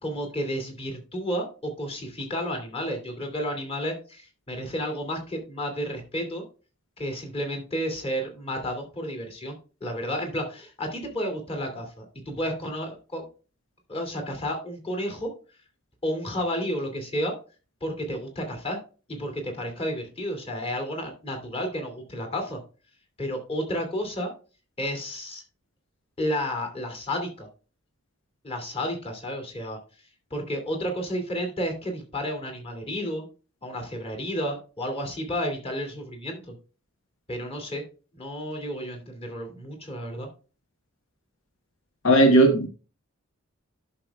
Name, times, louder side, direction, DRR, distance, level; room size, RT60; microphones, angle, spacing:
voice 1, 0.0-6.4 7.0-13.3 13.9-15.3 16.0-17.3 17.8-18.8 19.1-22.6 23.2-24.3 24.8-25.4 26.2-27.5 28.4-29.8 30.3-33.3 33.6-36.5 37.3-37.8 38.1-40.3, equal, 30° left, 4 dB, 2.5 m, -31 dB
voice 2, 42.0-42.7, right 1 dB, 70° left, 5 dB, 1.1 m, -16 dB
11.5 x 6.1 x 2.3 m, 0.34 s
head